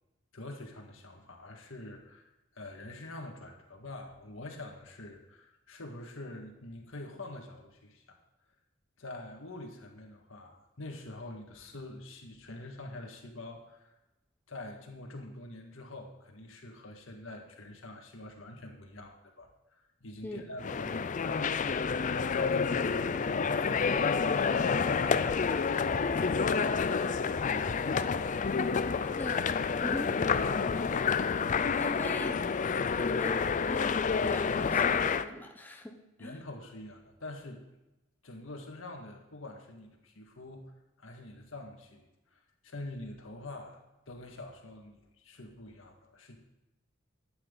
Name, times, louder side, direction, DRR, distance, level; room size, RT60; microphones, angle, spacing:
voice 1, 0.3-8.0 9.0-13.9 14.5-21.8 22.1-27.0 27.4-28.1 30.4-30.8 36.2-37.7 38.2-40.7 41.0-46.4, left 2 dB, 80° left, 3 dB, 1.8 m, -45 dB
sound 1, 20.6-35.3, left 5 dB, 40° left, 0.4 m, -29 dB
voice 2, 29.2-29.5 29.8-30.2 31.8-32.5 33.0-36.4, left 1 dB, 10° left, 3 dB, 0.8 m, -41 dB
11.5 x 9.3 x 3.9 m, 0.98 s
head